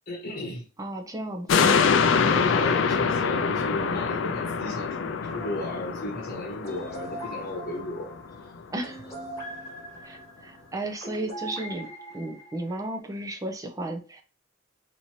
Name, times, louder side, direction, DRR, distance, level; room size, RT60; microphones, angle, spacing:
voice 1, 0.1-0.6 1.9-8.1 8.4-8.5, left 1 dB, 50° left, -1 dB, 1.0 m, -35 dB
voice 2, 0.8-1.9 8.7-9.1 10.0-11.9 12.1-14.2, right 1 dB, 20° right, 3 dB, 0.6 m, -34 dB
sound 1, 1.5-8.1 8.6-8.7, left 5 dB, 70° left, 0.4 m, -25 dB
sound 2, 5.2-13.0, right 1 dB, 15° left, 1.4 m, -42 dB
4.2 x 2.8 x 3.1 m, 0.34 s
head